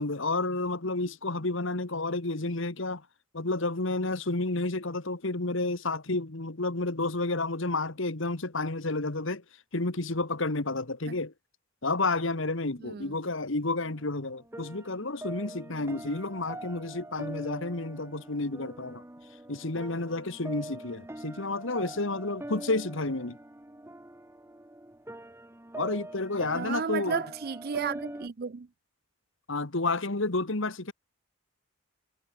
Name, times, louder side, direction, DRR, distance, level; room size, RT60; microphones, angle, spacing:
voice 1, 0.0-3.0 3.3-9.4 9.7-11.3 11.8-19.0 19.5-23.4 25.8-27.2 29.5-30.9, left 2 dB, 60° left, 1.6 m, -30 dB
voice 2, 12.8-13.2 26.5-28.7, right 6 dB, 45° right, 0.5 m, -33 dB
sound 1, 13.8-28.3, right 1 dB, 10° right, 1.1 m, -43 dB
head